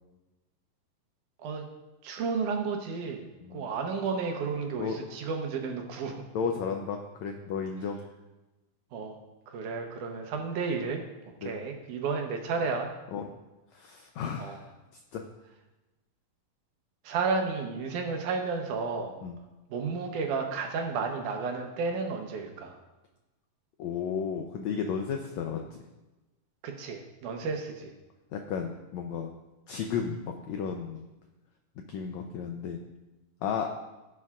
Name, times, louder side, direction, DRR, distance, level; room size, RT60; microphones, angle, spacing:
voice 1, 2.0-3.3 3.5-6.3 8.9-9.2 9.5-11.0 11.4-12.9 14.4-14.6 17.0-19.2 19.7-22.8 26.6-27.9, right 4 dB, 70° right, 3 dB, 2.3 m, -32 dB
voice 2, 6.3-8.0 11.4-11.5 13.1-13.3 13.7-14.7 15.1-15.3 19.2-19.4 23.8-25.8 28.3-29.3 29.7-31.0 31.9-32.8 33.4-33.7, left 6 dB, 85° left, 3 dB, 1.6 m, -33 dB
16.5 x 7.0 x 2.4 m, 1.1 s
omnidirectional pair, 3.9 m